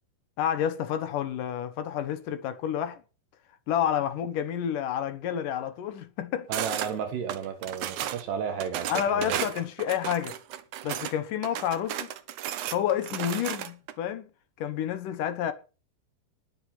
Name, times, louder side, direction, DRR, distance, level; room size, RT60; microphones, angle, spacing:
voice 1, 0.4-3.0 3.7-6.5 8.9-10.4 10.8-12.1 12.7-14.3 14.6-15.5, left 9 dB, 65° left, 2.3 m, -29 dB
voice 2, 6.5-9.4, right 7 dB, 70° right, 3.5 m, -33 dB
sound 1, 6.5-6.9 7.3-8.2 8.6-11.1 11.4-13.9, right 11 dB, 85° right, 1.7 m, -34 dB
20.0 x 7.1 x 6.0 m
omnidirectional pair, 5.1 m